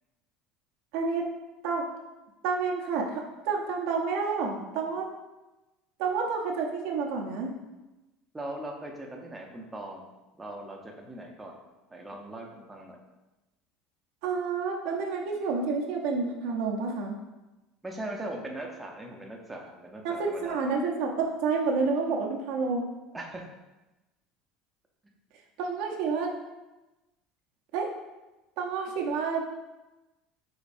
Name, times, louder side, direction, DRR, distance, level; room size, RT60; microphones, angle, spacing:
voice 1, 0.9-1.3 1.6-1.9 2.4-5.1 6.0-7.5 14.2-17.2 20.0-22.9 25.6-26.3 27.7-27.9 28.6-29.4, right 4 dB, 75° right, 0 dB, 0.7 m, -29 dB
voice 2, 8.3-10.1 10.4-11.5 11.9-13.0 17.8-20.6 23.1-23.4, right 1 dB, 10° right, 0 dB, 0.7 m, -40 dB
5.1 x 3.9 x 2.6 m, 1.0 s
supercardioid pair, 115°, 0 cm